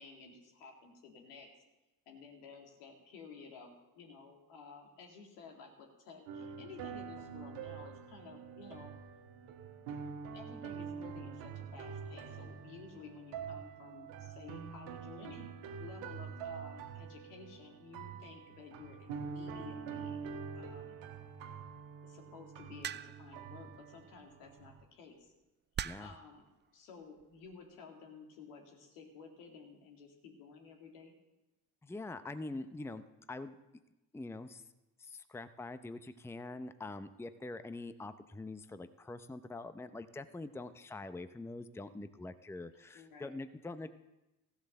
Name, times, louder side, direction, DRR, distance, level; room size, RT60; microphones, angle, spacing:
voice 1, 0.0-1.5 2.1-8.9 10.3-15.5 15.8-20.2 20.5-20.9 22.0-25.3 26.0-26.4 26.7-31.1 42.9-43.4, left 5 dB, 80° left, 1 dB, 2.4 m, -53 dB
sound 1, 6.3-24.8, right 6 dB, 75° right, 1.4 m, -46 dB
sound 2, 22.8-23.4 24.6-24.8 25.8-26.2 27.2-27.5, right 9 dB, 25° right, 0.4 m, -40 dB
voice 2, 25.8-26.1 31.8-33.5 34.1-34.6 35.0-43.9, left 2 dB, 5° left, 11 dB, 0.7 m, -44 dB
15.0 x 8.0 x 6.6 m, 0.98 s
hypercardioid pair, 50°, 45 cm